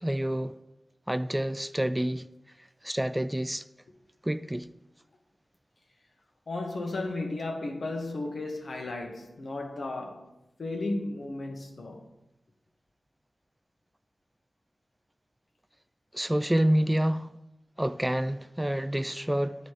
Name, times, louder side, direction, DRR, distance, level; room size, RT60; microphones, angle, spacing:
voice 1, 0.0-0.5 1.1-2.3 2.8-3.6 4.2-4.7 16.1-17.3 17.8-19.5, right 1 dB, 10° right, 0.3 m, -28 dB
voice 2, 6.5-10.3 10.6-12.1, left 2 dB, 75° left, 1.2 m, -34 dB
10.5 x 4.1 x 4.8 m
wide cardioid pair, 70°, 0 cm